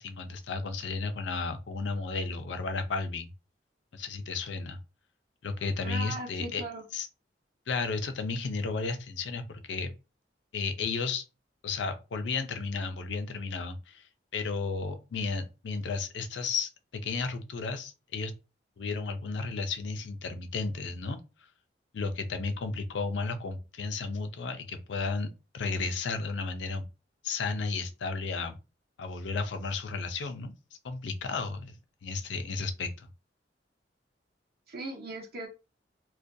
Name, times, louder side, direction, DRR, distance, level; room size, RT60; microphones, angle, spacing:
voice 1, 0.0-3.3 3.9-4.8 5.4-6.6 6.9-7.1 7.7-9.9 10.5-11.2 11.6-18.3 18.8-21.2 21.9-26.9 27.2-28.6 29.0-30.5 30.8-33.1, left 4 dB, 85° left, 0.4 m, -33 dB
voice 2, 5.8-6.8 34.7-35.5, right 2 dB, 60° right, 0.7 m, -38 dB
2.4 x 2.2 x 2.5 m
head